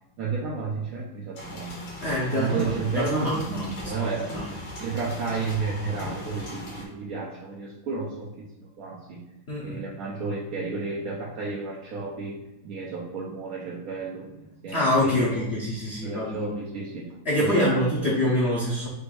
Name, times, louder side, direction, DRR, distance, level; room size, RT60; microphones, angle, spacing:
voice 1, 0.2-1.7 2.3-4.3 4.8-9.2 9.6-14.3 14.6-15.5 16.0-17.1 17.4-18.1, right 4 dB, 70° right, -3 dB, 0.8 m, -32 dB
sound 1, 1.4-6.8, left 1 dB, 70° left, 2.0 m, -39 dB
voice 2, 2.0-3.7 4.3-4.5 9.5-9.8 14.7-16.5 17.2-18.9, left 1 dB, 50° left, -6 dB, 0.8 m, -25 dB
6.2 x 2.6 x 3.2 m, 0.97 s
omnidirectional pair, 2.2 m